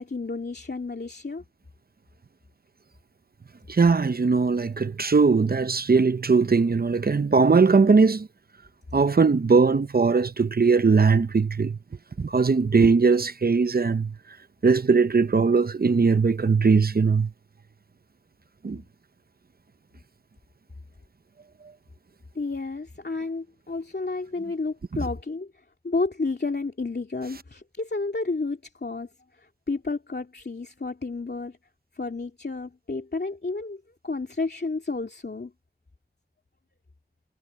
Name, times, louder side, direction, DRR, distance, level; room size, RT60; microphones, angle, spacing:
voice 1, 0.0-1.4 22.3-25.5 25.8-29.1 29.4-31.6 31.9-35.5, left 3 dB, 75° left, 2.7 m, -31 dB
voice 2, 3.7-8.3 8.9-11.8 12.2-14.1 14.6-17.3 18.6-18.8, right 4 dB, 65° right, 0.6 m, -20 dB
wide cardioid pair, 45°, 17 cm